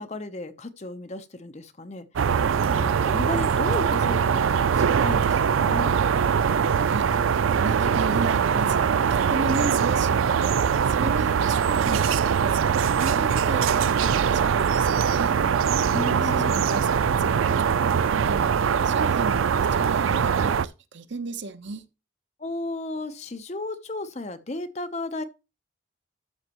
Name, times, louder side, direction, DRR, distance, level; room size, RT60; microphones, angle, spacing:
voice 1, 0.0-2.1 2.6-6.0 15.9-16.6 22.4-25.2, left 2 dB, 35° left, 0.8 m, -34 dB
sound 1, 2.2-20.7, right 7 dB, 90° right, 0.4 m, -22 dB
voice 2, 6.6-7.3 7.6-15.4 16.2-21.9, right 3 dB, 65° right, 0.9 m, -35 dB
12.5 x 6.5 x 3.0 m
head